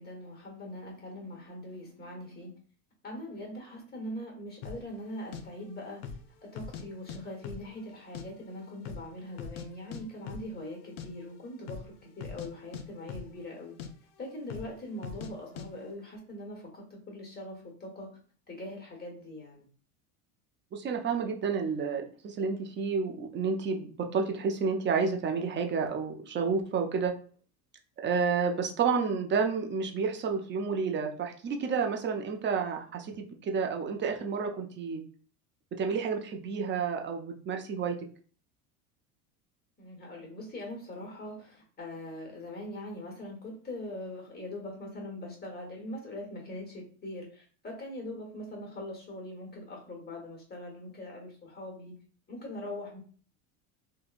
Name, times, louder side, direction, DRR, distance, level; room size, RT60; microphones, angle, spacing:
voice 1, 0.0-2.5 3.0-6.0 6.4-13.8 14.2-18.2 18.5-19.7 39.8-51.9 52.3-53.0, left 1 dB, 20° left, 0 dB, 1.3 m, -42 dB
sound 1, 4.6-4.8 5.3-5.4 5.9-6.3 6.6-7.2 7.4-8.3 8.5-8.6 8.9-9.7 9.9-10.0 10.3-10.5 10.8-11.1 11.6-11.9 12.2-12.5 12.7-13.5 13.8-13.9 14.5-14.7 15.0-15.3 15.6-15.7, left 6 dB, 65° left, 0.6 m, -41 dB
voice 2, 20.7-27.1 28.0-35.0 35.8-38.0, right 5 dB, 25° right, 4 dB, 0.5 m, -30 dB
3.4 x 2.2 x 2.4 m, 0.44 s
supercardioid pair, 100°, 43 cm